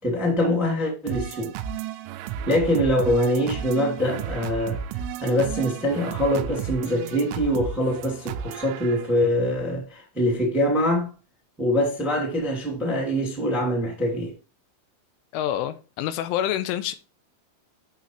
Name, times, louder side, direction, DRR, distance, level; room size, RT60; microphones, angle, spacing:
voice 1, 0.0-1.5 2.4-11.1 11.6-14.3, equal, ahead, 1.3 m, -24 dB
sound 1, 1.1-9.3, right 8 dB, 85° right, 3.1 m, -33 dB
voice 2, 15.3-16.9, left 11 dB, 85° left, 3.0 m, -27 dB
9.1 x 6.9 x 3.1 m
omnidirectional pair, 5.7 m